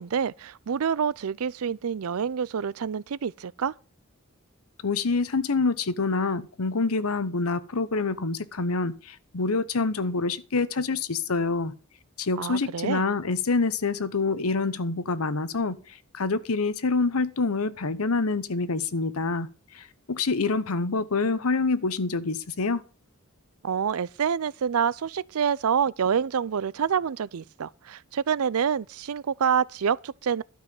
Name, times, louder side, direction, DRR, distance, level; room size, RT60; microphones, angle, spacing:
voice 1, 0.0-3.7 12.4-13.0 23.6-30.4, right 7 dB, 75° right, 0.5 m, -27 dB
voice 2, 4.8-11.8 12.2-19.5 19.7-22.8, left 3 dB, 80° left, 1.0 m, -26 dB
12.5 x 5.6 x 7.7 m
head